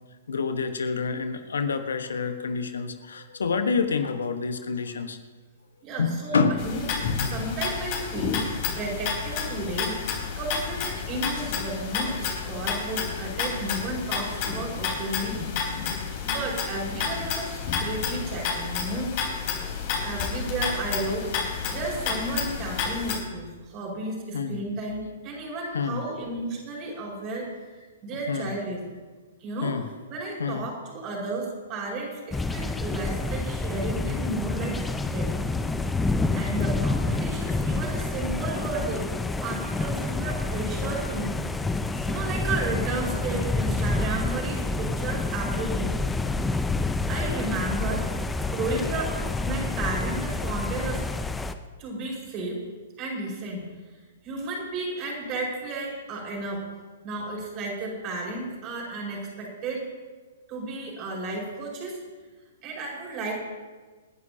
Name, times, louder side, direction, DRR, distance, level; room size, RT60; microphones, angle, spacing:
voice 1, 0.3-5.2 6.0-6.5 24.3-24.6 25.7-26.0 28.3-28.5 29.6-29.8 30.4-30.7, left 5 dB, 75° left, 8 dB, 1.2 m, -27 dB
voice 2, 5.8-6.9 7.3-8.5 8.7-10.0 10.3-15.4 16.2-19.1 20.0-27.5 28.0-28.8 29.4-29.7 30.1-35.3 36.3-39.1 39.4-41.3 42.0-46.0 47.1-48.2 48.5-51.0 51.8-52.6 53.0-53.6 54.2-56.6 57.0-59.9 60.5-62.0 62.6-63.3, right 2 dB, 35° right, -2 dB, 5.1 m, -33 dB
sound 1, 6.6-23.2, left 6 dB, 45° left, 4.1 m, -30 dB
sound 2, 32.3-51.5, left 3 dB, 10° left, 0.7 m, -28 dB
28.0 x 11.0 x 2.9 m, 1.4 s
figure-of-eight pair, 115°, 0 cm